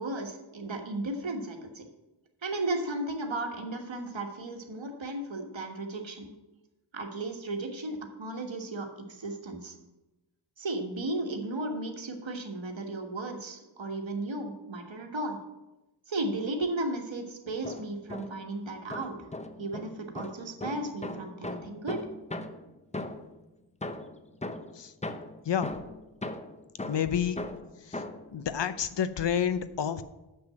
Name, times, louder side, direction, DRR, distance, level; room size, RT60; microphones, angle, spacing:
voice 1, 0.0-1.9 2.4-6.3 6.9-9.8 10.6-15.4 16.1-19.3 19.6-22.0, right 2 dB, 65° right, 4 dB, 1.5 m, -35 dB
sound 1, 17.5-18.5 18.9-23.4 23.8-28.3, left 2 dB, 15° left, 0.6 m, -39 dB
voice 2, 26.9-27.4 27.9-28.0 28.3-30.0, left 8 dB, 60° left, 13 dB, 0.7 m, -29 dB
6.8 x 6.1 x 7.5 m, 1.0 s
wide cardioid pair, 50°, 49 cm